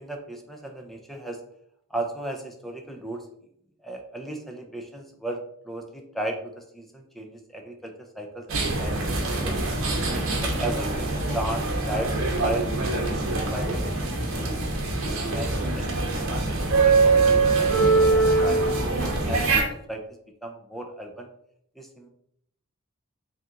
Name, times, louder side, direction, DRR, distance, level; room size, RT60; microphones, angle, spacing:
voice 1, 0.0-1.4 1.9-3.3 3.8-9.6 10.3-14.5 15.0-16.6 16.8-19.4 19.9-20.0 20.4-21.3 21.8-22.1, right 1 dB, ahead, 2 dB, 0.5 m, -36 dB
sound 1, 8.5-19.6, right 3 dB, 65° right, 0.9 m, -23 dB
3.8 x 2.9 x 3.6 m, 0.72 s
head